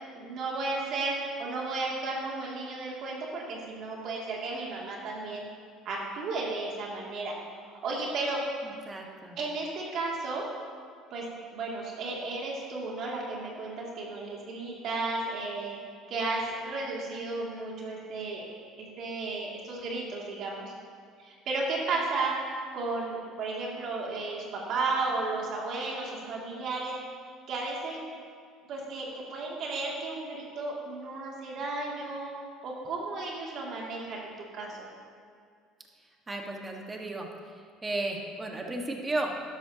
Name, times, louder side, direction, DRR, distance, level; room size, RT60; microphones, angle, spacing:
voice 1, 0.1-5.5 5.8-7.3 7.6-8.4 9.4-10.4 11.1-11.2 11.5-15.8 16.1-20.7 21.2-22.3 22.7-27.0 27.5-28.0 28.7-32.3 32.6-34.9, right 3 dB, 60° right, -3 dB, 2.6 m, -34 dB
voice 2, 8.6-9.4 36.3-37.3 37.8-39.3, right 2 dB, 20° right, 1 dB, 1.6 m, -34 dB
12.5 x 11.0 x 2.9 m, 2.2 s
supercardioid pair, 90°, 0 cm